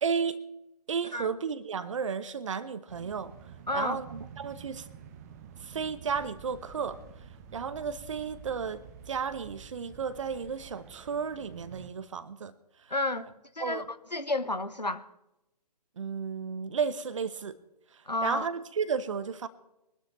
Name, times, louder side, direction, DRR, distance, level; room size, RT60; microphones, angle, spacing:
voice 1, 0.0-0.4 0.9-3.3 3.7-4.8 5.6-7.0 7.5-12.5 13.6-13.8 16.0-17.6 18.2-19.5, right 6 dB, 50° right, 1.1 m, -33 dB
sound 1, 2.9-11.9, right 7 dB, 25° right, 1.0 m, -49 dB
voice 2, 3.7-4.0 12.9-13.3 13.6-13.8 14.1-15.0 18.1-18.5, left 2 dB, 90° left, 1.1 m, -31 dB
23.0 x 12.5 x 3.2 m
figure-of-eight pair, 135°, 21 cm